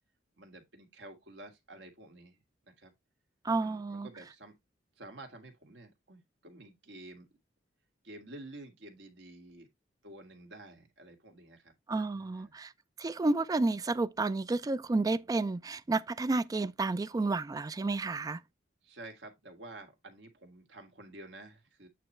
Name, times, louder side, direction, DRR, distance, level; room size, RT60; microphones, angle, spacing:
voice 1, 0.4-2.9 3.6-4.5 5.0-7.3 8.0-9.7 10.0-12.6 18.8-21.9, right 2 dB, 70° right, 1.7 m, -50 dB
voice 2, 3.4-4.1 11.9-12.7 13.0-18.4, right 3 dB, 20° right, 0.3 m, -31 dB
8.5 x 3.0 x 4.3 m
head